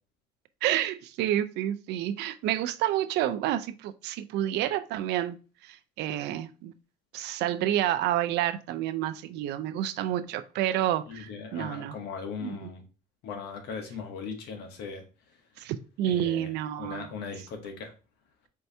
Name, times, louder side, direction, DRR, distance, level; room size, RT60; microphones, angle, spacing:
voice 1, 0.6-5.4 5.6-6.7 7.1-12.0 12.4-12.7 15.6-17.1, right 12 dB, 85° right, 0.4 m, -29 dB
voice 2, 11.1-12.8 13.2-15.0 16.0-16.5 16.8-17.9, left 5 dB, 85° left, 1.1 m, -38 dB
4.5 x 2.7 x 3.3 m
cardioid pair, 110°, 17 cm